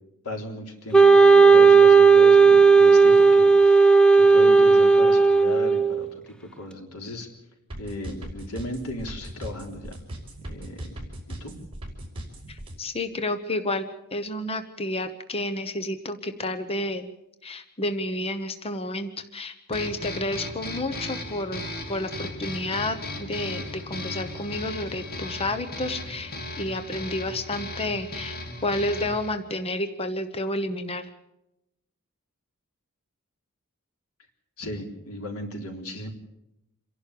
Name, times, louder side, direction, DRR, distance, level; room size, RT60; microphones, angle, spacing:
voice 1, 0.2-7.3 7.8-10.0 10.4-10.9 11.3-11.5 34.6-36.1, left 1 dB, 90° left, 3 dB, 3.7 m, -36 dB
Wind instrument woodwind instrument, 0.9-6.0, right 4 dB, 5° left, 0.8 m, -14 dB
sound 1, 7.7-12.7, right 1 dB, 25° right, 5.1 m, -38 dB
voice 2, 12.5-17.1 17.4-21.6 21.9-28.4 28.6-31.1, left 1 dB, 25° left, 9 dB, 1.0 m, -30 dB
sound 2, 19.7-29.3, left 2 dB, 45° left, 2.8 m, -36 dB
27.5 x 11.5 x 8.5 m, 0.89 s
head